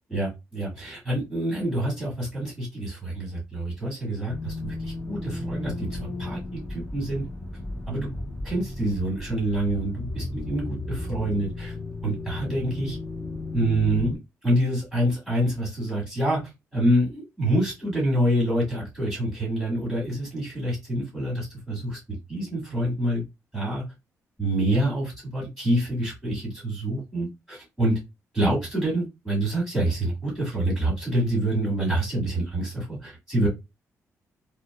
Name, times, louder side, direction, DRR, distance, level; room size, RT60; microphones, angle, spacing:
voice 1, 0.1-7.2 7.9-8.1 8.4-11.7 12.0-13.0 13.5-14.2 14.4-16.4 16.7-22.0 22.3-23.2 23.5-23.8 24.4-28.0 28.3-33.5, right 1 dB, 5° left, -6 dB, 1.8 m, -26 dB
sound 1, 4.3-14.2, left 2 dB, 20° left, 0.7 m, -34 dB
4.1 x 2.2 x 2.3 m, 0.23 s
wide cardioid pair, 175°, 6 cm